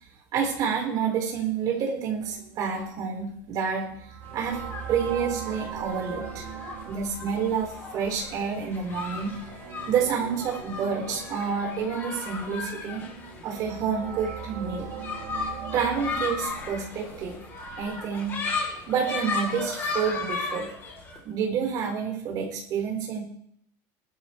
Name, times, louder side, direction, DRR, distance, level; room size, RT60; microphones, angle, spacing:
voice 1, 0.3-4.6 4.9-6.4 6.9-9.3 9.9-13.0 13.4-14.9 15.7-17.4 17.8-18.4 18.9-20.7 21.2-23.2, right 6 dB, 35° right, -1 dB, 4.7 m, -29 dB
sound 1, 2.2-17.8, right 8 dB, 60° right, 2.1 m, -41 dB
sound 2, 4.2-21.2, left 4 dB, 25° left, 3.6 m, -36 dB
20.5 x 12.5 x 3.4 m, 0.68 s
cardioid pair, 175°, 10 cm